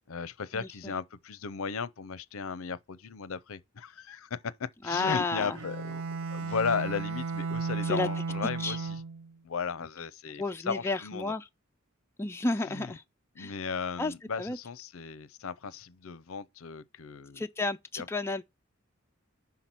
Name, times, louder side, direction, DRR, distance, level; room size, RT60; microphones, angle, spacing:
voice 1, 0.1-6.0 6.3-9.0 9.4-11.3 12.7-12.9 13.4-17.4 18.0-18.1, left 5 dB, 70° left, 0.6 m, -36 dB
voice 2, 4.8-5.6 7.9-8.1 8.6-8.8 10.4-11.5 12.2-13.0 13.4-13.5 14.0-14.6 17.4-18.4, left 3 dB, 10° left, 0.4 m, -31 dB
Bowed string instrument, 5.5-9.3, right 4 dB, 80° right, 0.7 m, -34 dB
5.8 x 5.7 x 4.4 m
head